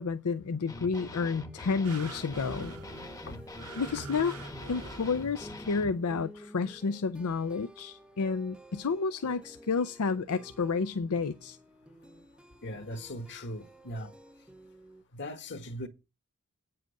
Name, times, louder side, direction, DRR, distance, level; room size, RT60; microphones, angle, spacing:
voice 1, 0.0-2.7 3.8-4.3 4.7-11.6, left 5 dB, 75° left, 0.6 m, -30 dB
sound 1, 0.7-5.9, left 2 dB, 15° left, 1.0 m, -44 dB
sound 2, 0.9-15.0, equal, 5° right, 0.9 m, -51 dB
sound 3, 1.8-5.8 6.4-6.5, right 4 dB, 80° right, 1.7 m, -46 dB
voice 2, 12.6-14.1 15.1-15.9, left 1 dB, 55° left, 1.6 m, -39 dB
9.1 x 7.7 x 6.5 m
head